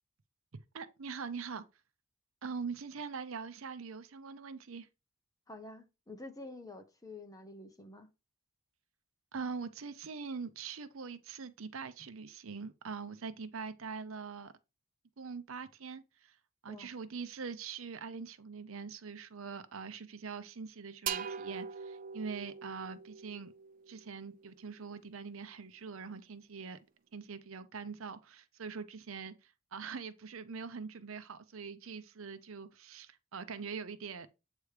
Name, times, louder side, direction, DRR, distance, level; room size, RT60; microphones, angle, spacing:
voice 1, 0.7-1.6 2.4-4.9 9.3-14.5 15.2-16.4 16.6-23.5 23.9-26.8 27.1-34.3, right 5 dB, 70° right, 0.7 m, -43 dB
voice 2, 5.5-8.1 16.7-16.9, left 2 dB, 15° left, 0.9 m, -48 dB
sound 1, 21.1-24.7, right 7 dB, 40° right, 0.4 m, -42 dB
8.2 x 3.1 x 4.9 m
head